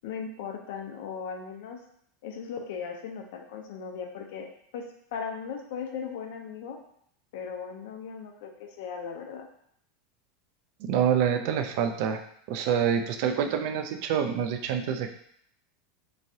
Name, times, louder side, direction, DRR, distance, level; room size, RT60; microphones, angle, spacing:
voice 1, 0.0-1.8 2.2-4.5 4.7-4.8 5.1-6.8 7.3-9.5, left 6 dB, 75° left, 2 dB, 0.6 m, -37 dB
voice 2, 10.8-12.2 12.5-15.1, right 8 dB, 60° right, 6 dB, 0.3 m, -26 dB
3.5 x 3.1 x 2.7 m, 0.67 s
supercardioid pair, 150°, 0 cm